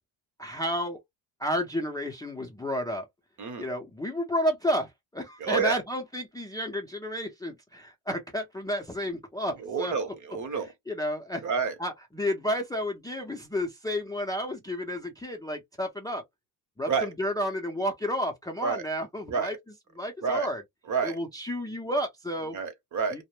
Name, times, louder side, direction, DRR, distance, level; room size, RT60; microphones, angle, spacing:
voice 1, 0.4-1.0 1.4-3.1 3.6-10.1 10.9-11.4 11.8-16.2 16.8-19.6 20.0-20.6 21.0-22.6 23.1-23.2, equal, 10° left, 0.5 m, -31 dB
voice 2, 5.4-5.8 9.6-10.7 11.4-11.7 16.9-17.1 18.6-18.8 19.3-19.5 20.2-20.5 20.9-21.2 22.5-23.2, right 5 dB, 40° right, 0.9 m, -29 dB
2.1 x 2.1 x 3.0 m
cardioid pair, 105°, 46 cm